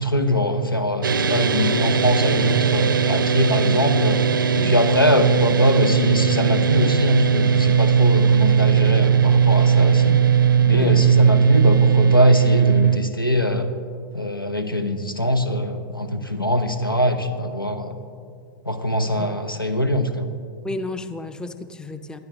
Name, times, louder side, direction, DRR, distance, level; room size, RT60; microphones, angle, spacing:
voice 1, 0.0-4.2 4.5-10.2 10.6-13.7 14.1-18.0 18.7-20.3, left 1 dB, 90° left, 9 dB, 1.1 m, -22 dB
sound 1, 1.0-13.0, right 7 dB, 75° right, 0.6 m, -18 dB
voice 2, 20.6-22.2, left 2 dB, 5° left, 10 dB, 0.6 m, -33 dB
20.0 x 12.0 x 3.1 m, 2.3 s
figure-of-eight pair, 100°, 11 cm